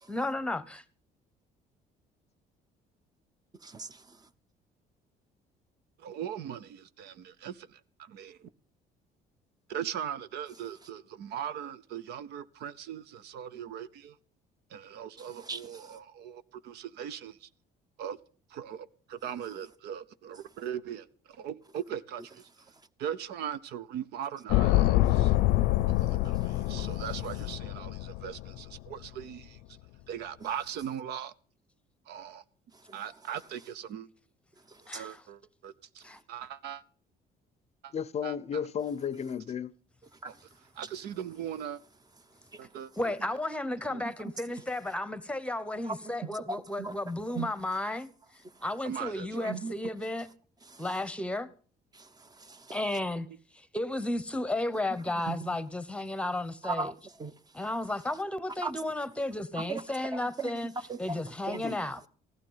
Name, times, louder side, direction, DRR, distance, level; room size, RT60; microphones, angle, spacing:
voice 1, 0.1-0.8 34.9-35.2 36.0-36.2 43.0-48.1 48.6-50.3 50.8-51.5 52.7-53.3 53.5-56.9 57.5-60.7 61.0-62.0, left 1 dB, 5° left, 0.9 m, -33 dB
voice 2, 3.6-4.2 15.2-16.0 26.9-27.0 32.9-33.0 34.7-35.0 40.2-40.3 42.5-42.6 44.0-44.1 45.8-47.5 49.4-49.7 50.7-50.8 51.9-52.8 55.3-55.6 56.6-56.9 57.2-57.3 58.6-58.7 59.6-60.6 60.9-61.2 61.5-61.6, right 4 dB, 25° right, 0.8 m, -39 dB
voice 3, 6.0-8.5 9.7-14.2 14.7-17.5 18.0-18.2 18.5-22.5 23.0-25.3 25.9-29.6 30.1-31.3 32.1-32.4 32.9-34.1 34.9-36.8 37.8-37.9 38.2-38.6 40.3-40.4 40.8-41.8 42.6-42.9 43.9-44.0 48.8-49.5, right 9 dB, 80° right, 0.8 m, -40 dB
sound 1, 24.5-28.8 29.0-29.1, left 16 dB, 90° left, 0.6 m, -26 dB
voice 4, 37.9-39.7 61.6-61.8, left 7 dB, 40° left, 0.6 m, -33 dB
15.0 x 12.0 x 5.6 m
cardioid pair, 110°, 17 cm